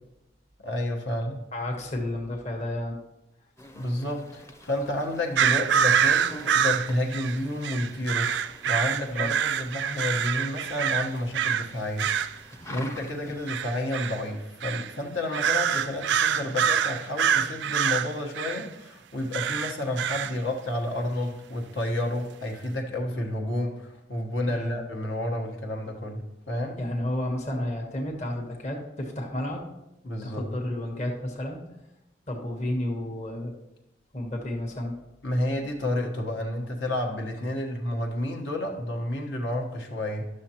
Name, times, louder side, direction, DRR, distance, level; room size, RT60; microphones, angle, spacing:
voice 1, 0.6-1.4 3.7-26.8 30.0-30.4 35.2-40.3, left 1 dB, 75° left, 0 dB, 1.2 m, -30 dB
voice 2, 1.5-3.0 9.1-9.3 24.5-24.8 26.8-29.6 30.2-31.6 32.3-33.5 34.1-35.0, left 1 dB, 40° left, 0 dB, 1.1 m, -31 dB
sound 1, 3.6-13.5, equal, 15° left, 0.6 m, -47 dB
sound 2, 5.3-11.7 12.0-12.4 13.5-14.2 14.6-14.9 15.3-18.6 19.3-20.3, right 8 dB, 65° right, 0.3 m, -25 dB
11.0 x 6.5 x 2.9 m, 0.90 s
head